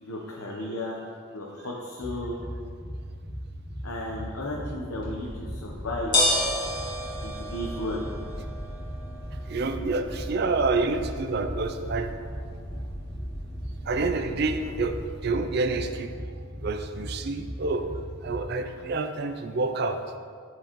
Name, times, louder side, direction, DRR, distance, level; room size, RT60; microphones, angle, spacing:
voice 1, 0.0-1.0 1.3-2.4 3.8-6.2 7.2-8.1, left 1 dB, 85° left, -3 dB, 0.9 m, -34 dB
sound 1, 2.0-18.4, equal, 5° right, 0.8 m, -38 dB
sound 2, 5.0-15.1, left 1 dB, 20° left, 1.8 m, -33 dB
voice 2, 9.5-12.1 13.9-15.0 15.2-16.1 16.6-17.8 18.2-20.0, right 3 dB, 50° right, 7 dB, 0.4 m, -28 dB
12.5 x 4.6 x 3.0 m, 2.1 s
head